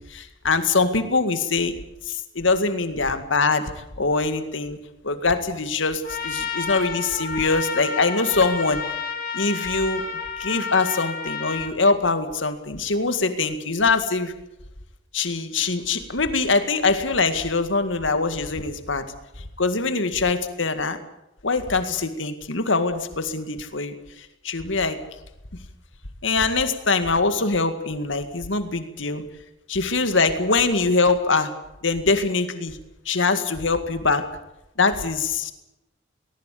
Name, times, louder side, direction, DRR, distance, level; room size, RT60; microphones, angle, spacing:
voice 1, 0.1-1.7 2.4-3.6 4.0-4.8 5.0-8.8 9.3-10.0 10.4-14.3 15.1-19.0 19.6-21.0 21.4-23.9 24.4-25.0 26.2-29.2 29.7-31.5 31.8-32.7 33.1-34.3 34.8-35.5, left 3 dB, 75° left, 9 dB, 2.0 m, -23 dB
Trumpet, 6.0-11.7, left 5 dB, 45° left, 3.9 m, -30 dB
20.0 x 19.0 x 8.5 m, 0.91 s
head